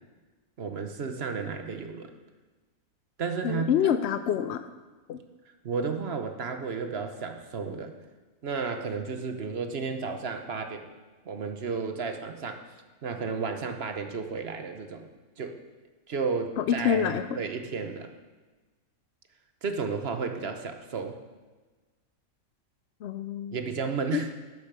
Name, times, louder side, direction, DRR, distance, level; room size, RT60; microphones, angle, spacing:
voice 1, 0.6-2.1 3.2-3.9 5.6-7.9 8.4-10.9 11.3-12.6 13.0-15.1 15.4-15.5 16.1-18.1 19.6-21.2 23.5-24.3, right 5 dB, 50° right, 6 dB, 1.0 m, -32 dB
voice 2, 3.4-4.7 5.1-5.2 16.6-17.2 23.0-23.6 24.1-24.2, left 9 dB, 70° left, 10 dB, 0.6 m, -26 dB
10.5 x 7.1 x 6.7 m, 1.3 s
omnidirectional pair, 1.6 m